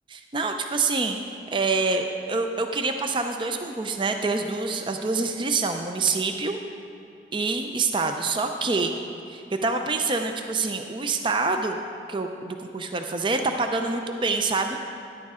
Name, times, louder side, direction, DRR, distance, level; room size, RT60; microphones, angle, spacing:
voice 1, 0.1-1.2 1.5-6.6 7.3-8.9 9.3-11.8 12.1-14.8, right 3 dB, 30° right, 5 dB, 0.5 m, -26 dB
13.0 x 10.5 x 3.7 m, 2.6 s
head